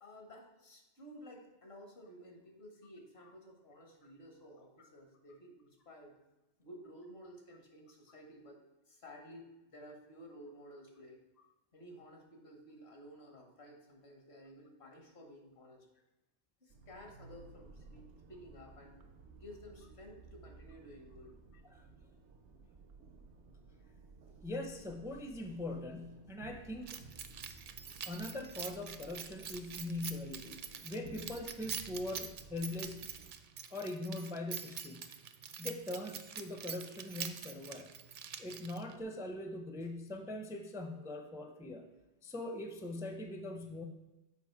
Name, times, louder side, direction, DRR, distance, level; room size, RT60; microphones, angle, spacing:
voice 1, 0.0-6.2 6.6-11.2 11.7-15.9 16.6-19.0 19.4-21.4, equal, 70° left, 2 dB, 1.6 m, -54 dB
sound 1, 16.7-33.3, right 4 dB, 80° right, 1.0 m, -56 dB
voice 2, 24.4-27.0 28.0-33.1 33.7-35.0 35.6-37.9 38.4-41.8 42.2-43.8, left 2 dB, 5° right, 5 dB, 0.4 m, -42 dB
Keys jangling, 26.9-39.0, right 7 dB, 55° right, 0.6 m, -45 dB
6.9 x 5.1 x 4.6 m, 1.0 s
omnidirectional pair, 1.1 m